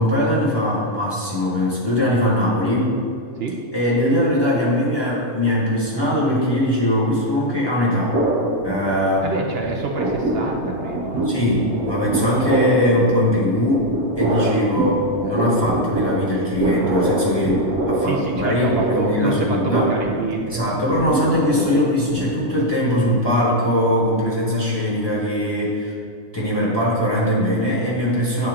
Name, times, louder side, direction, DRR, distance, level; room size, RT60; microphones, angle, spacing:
voice 1, 0.0-3.0 3.7-8.2 8.6-9.3 11.2-13.9 14.2-19.8 20.5-25.9 26.3-28.5, left 1 dB, 15° left, -6 dB, 1.4 m, -21 dB
sound 1, 8.1-9.4 9.6-22.8, right 1 dB, 70° right, 1.4 m, -24 dB
voice 2, 9.2-11.3 18.0-20.6, right 3 dB, 55° right, 1 dB, 0.7 m, -26 dB
9.6 x 4.3 x 3.7 m, 2.3 s
omnidirectional pair, 1.5 m